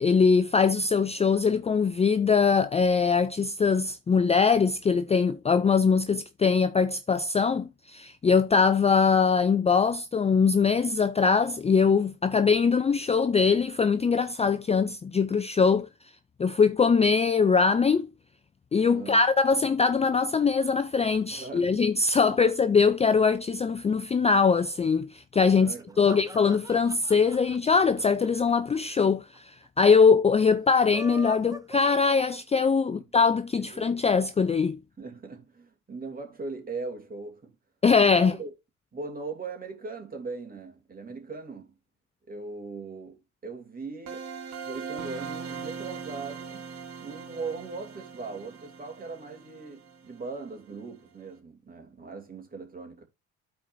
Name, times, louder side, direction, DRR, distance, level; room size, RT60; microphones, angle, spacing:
voice 1, 0.0-15.9 16.4-18.1 18.7-34.8 37.8-38.3, left 5 dB, 20° left, 0.4 m, -22 dB
voice 2, 18.9-19.3 21.3-21.8 22.2-22.4 25.5-26.3 32.9-33.1 33.6-34.0 35.0-37.5 38.1-38.5 38.9-41.7 42.3-44.3 44.6-46.6 47.0-53.0, right 4 dB, 30° right, 2.8 m, -39 dB
sound 1, 25.7-29.1 29.3-29.4 29.6-29.7 30.7-32.8, right 1 dB, 10° right, 1.0 m, -43 dB
sound 2, 44.1-50.7, right 6 dB, 55° right, 1.6 m, -40 dB
13.0 x 4.6 x 2.6 m
cardioid pair, 95°, 31 cm